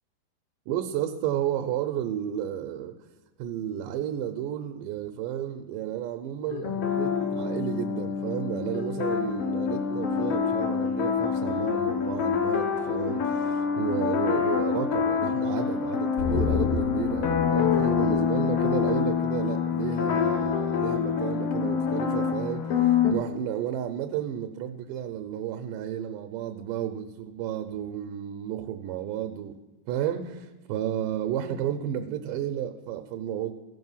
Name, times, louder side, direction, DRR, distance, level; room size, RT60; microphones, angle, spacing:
voice 1, 0.7-3.0 3.4-29.6 29.9-33.5, right 10 dB, 80° right, 6 dB, 2.1 m, -32 dB
sound 1, 6.5-23.1, left 7 dB, 65° left, 1.6 m, -26 dB
sound 2, 16.2-19.6 19.9-20.0, left 8 dB, 80° left, 1.8 m, -31 dB
15.5 x 5.7 x 5.5 m, 1.1 s
omnidirectional pair, 4.0 m